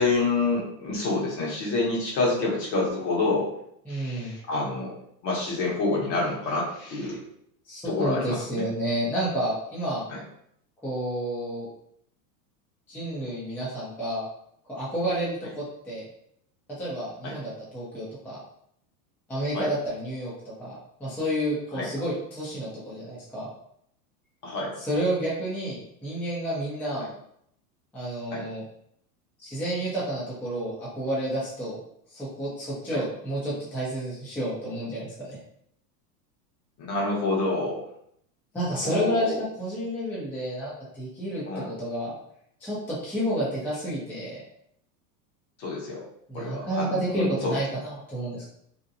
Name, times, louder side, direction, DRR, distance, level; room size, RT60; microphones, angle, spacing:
voice 1, 0.0-3.5 3.9-4.9 5.2-7.2 7.8-8.7 10.1-10.2 17.2-17.3 19.5-19.7 21.7-21.9 24.4-24.7 28.3-28.4 32.9-33.0 36.9-37.8 38.8-39.4 41.5-41.7 45.6-46.1 46.3-47.5, left 3 dB, 55° left, -3 dB, 1.1 m, -27 dB
voice 2, 3.9-4.3 7.7-10.0 10.8-11.7 12.9-14.3 14.6-16.1 16.8-18.4 19.3-20.3 20.6-23.5 24.8-27.1 27.9-28.6 29.4-31.8 32.1-35.4 38.5-42.1 42.6-44.4 46.3-48.5, right 1 dB, 5° left, -7 dB, 0.5 m, -30 dB
2.7 x 2.1 x 2.6 m, 0.71 s
supercardioid pair, 130°, 47 cm